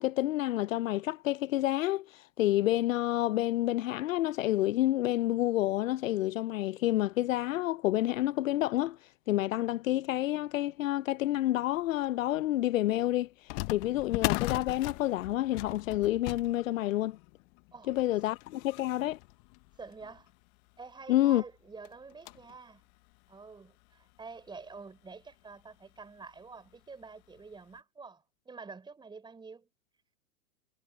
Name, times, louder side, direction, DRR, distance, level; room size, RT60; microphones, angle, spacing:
voice 1, 0.0-2.1 2.4-9.0 9.3-13.3 13.7-17.2 17.9-19.2 21.1-21.4, left 15 dB, 65° left, 0.8 m, -29 dB
sound 1, 12.0-12.1 13.5-20.4 21.0-21.1 21.3-21.4 21.8-22.6 23.1-23.2 24.0-24.1 24.5-24.6 26.0-26.2 26.7-26.8 27.4-27.5, left 26 dB, 35° left, 0.8 m, -38 dB
voice 2, 19.8-20.3 20.8-22.8 23.3-29.7, right 4 dB, 10° right, 4.8 m, -48 dB
hypercardioid pair, 125°, 43 cm